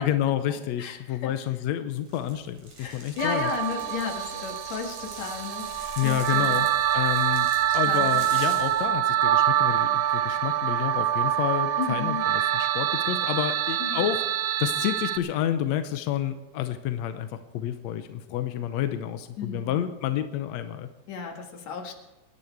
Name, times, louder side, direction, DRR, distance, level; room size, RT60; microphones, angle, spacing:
voice 1, 0.0-3.5 6.0-6.7 6.9-7.5 7.7-14.2 14.6-20.9, left 11 dB, 75° left, 9 dB, 1.6 m, -29 dB
voice 2, 0.8-1.3 2.8-6.6 7.7-8.2 11.8-12.2 13.8-14.0 19.4-19.9 21.1-21.9, left 6 dB, 55° left, 3 dB, 2.8 m, -34 dB
sound 1, 2.1-8.9, right 3 dB, 55° right, 4.9 m, -44 dB
sound 2, 3.2-15.2, right 12 dB, 75° right, 2.0 m, -25 dB
25.5 x 10.0 x 4.6 m, 1.0 s
omnidirectional pair, 3.9 m